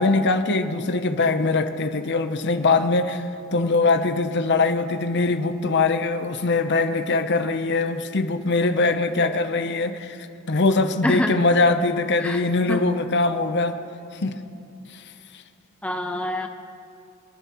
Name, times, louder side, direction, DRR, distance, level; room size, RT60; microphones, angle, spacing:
voice 1, 0.0-3.2 3.5-10.2 10.5-13.8 14.1-14.4 14.9-15.0, left 3 dB, 50° left, 8 dB, 0.8 m, -22 dB
voice 2, 11.0-11.3 12.2-12.4 12.7-12.8 15.8-16.5, left 1 dB, 5° left, 5 dB, 0.5 m, -25 dB
28.5 x 11.5 x 3.0 m, 2.5 s
head